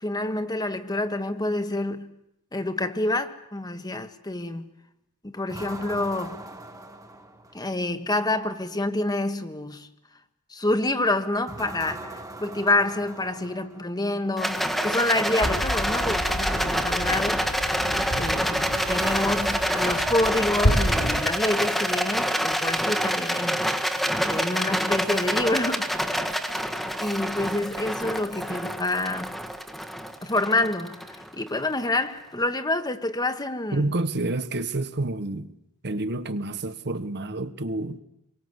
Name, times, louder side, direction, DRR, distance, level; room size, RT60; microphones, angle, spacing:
voice 1, 0.0-2.1 2.5-4.7 5.2-6.4 7.5-9.9 10.5-17.8 18.1-23.6 24.2-26.3 27.0-29.4 30.2-33.9, left 2 dB, 20° left, 1.5 m, -27 dB
sound 1, 5.5-7.8 11.5-14.0 18.7-21.3, right 2 dB, 15° right, 1.9 m, -40 dB
Rattle, 14.4-31.7, equal, ahead, 1.6 m, -27 dB
sound 2, 15.4-21.2, equal, 70° left, 4.1 m, -29 dB
voice 2, 33.7-35.5 35.8-38.0, right 2 dB, 50° right, 1.3 m, -29 dB
27.0 x 23.0 x 8.2 m
head